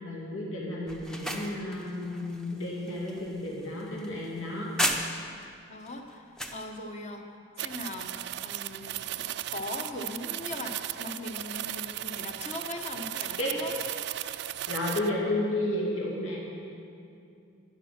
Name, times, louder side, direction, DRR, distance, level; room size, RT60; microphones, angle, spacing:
voice 1, 0.0-4.7 13.4-13.5 14.7-16.4, left 1 dB, 80° left, -4 dB, 2.5 m, -32 dB
sound 1, 0.9-5.4 5.9-6.6, equal, 5° left, 0.6 m, -35 dB
voice 2, 5.7-7.2 7.6-8.1 8.4-13.7, left 2 dB, 35° left, 4 dB, 1.0 m, -40 dB
sound 2, 7.6-15.1, right 13 dB, 55° right, 0.3 m, -36 dB
11.5 x 11.0 x 5.9 m, 2.5 s
head